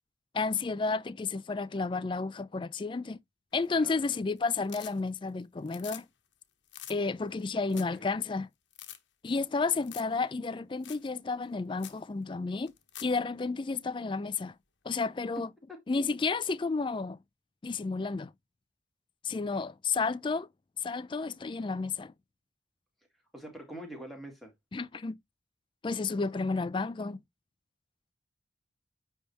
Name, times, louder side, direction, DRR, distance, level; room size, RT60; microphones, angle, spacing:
voice 1, 0.3-3.2 3.5-6.1 6.9-8.5 9.2-12.7 13.0-14.5 14.8-15.5 15.9-17.2 17.6-18.3 19.2-20.5 20.8-22.1 24.7-25.2 25.8-27.2, left 4 dB, 25° left, 0.3 m, -31 dB
sound 1, 3.5-4.1 4.4-5.3 5.6-6.0 6.3-6.4 6.7-7.0 7.4-7.5 7.7-8.0 8.3-8.4 8.7-9.0 9.8-10.2 10.4-10.5 10.8-11.1 11.4-11.5 11.8-12.0 12.7-13.2 15.4-15.5, left 12 dB, 70° left, 1.1 m, -46 dB
voice 2, 23.3-24.5, equal, ahead, 2.3 m, -44 dB
9.5 x 3.5 x 2.8 m
head